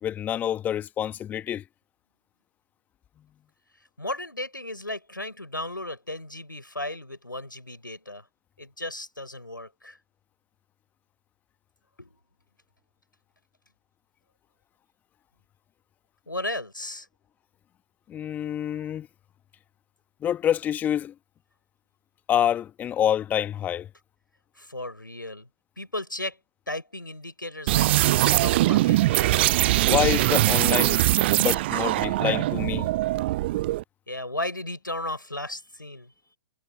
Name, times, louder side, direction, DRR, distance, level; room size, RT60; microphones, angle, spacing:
voice 1, 0.0-1.6 18.1-19.1 20.2-21.1 22.3-23.9 29.9-31.0 31.4-32.9, left 10 dB, 15° left, 1.4 m, -27 dB
voice 2, 4.0-8.2 8.6-10.0 12.0-12.2 16.3-17.1 24.6-25.5 25.8-26.4 26.7-29.6 34.1-36.1, left 1 dB, 90° left, 5.8 m, -35 dB
sound 1, 27.7-33.8, right 17 dB, 35° right, 0.4 m, -22 dB
figure-of-eight pair, 125°, 10 cm